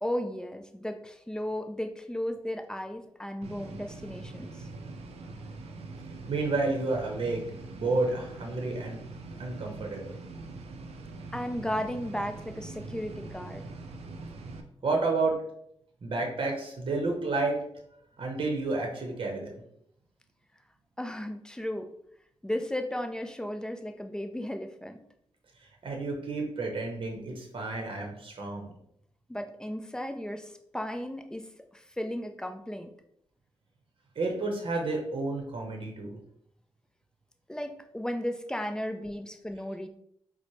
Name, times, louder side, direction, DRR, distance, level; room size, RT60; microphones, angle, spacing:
voice 1, 0.0-4.7 11.3-13.6 21.0-21.9 22.4-25.0 29.3-32.9 37.5-39.9, left 1 dB, 5° left, 6 dB, 0.4 m, -35 dB
sound 1, 3.4-14.6, right 3 dB, 85° right, 0.4 m, -43 dB
voice 2, 6.3-7.4 7.8-9.0 9.4-10.2 14.8-15.4 16.0-17.6 18.2-19.5 25.8-28.7 34.2-36.2, right 3 dB, 55° right, 1 dB, 0.7 m, -30 dB
4.3 x 2.1 x 3.1 m, 0.72 s
cardioid pair, 75°, 10 cm